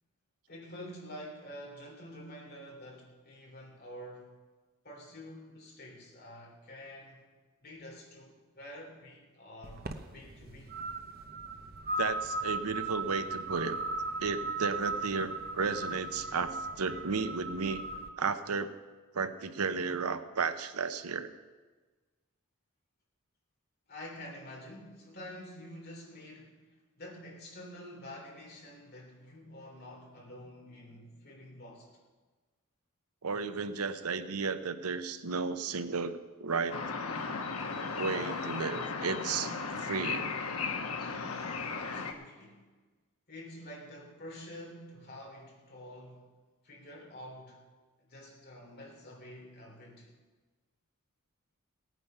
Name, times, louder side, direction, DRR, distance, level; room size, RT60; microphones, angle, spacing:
voice 1, 0.5-4.3 4.8-7.2 7.6-10.7 15.8-16.3 23.9-26.6 27.0-31.9 41.8-42.6 43.3-46.3 46.6-47.6 48.0-50.1, left 1 dB, 45° left, -1 dB, 3.3 m, -48 dB
sound 1, 9.6-18.1, right 2 dB, 40° right, 0.8 m, -37 dB
voice 2, 12.0-13.8 14.2-17.8 18.2-18.8 19.1-21.3 33.2-36.8 38.0-39.5 39.8-40.4, right 4 dB, 90° right, 10 dB, 0.8 m, -33 dB
sound 2, 36.7-42.1, left 4 dB, 85° left, 1.2 m, -36 dB
17.5 x 9.3 x 5.7 m, 1.3 s
head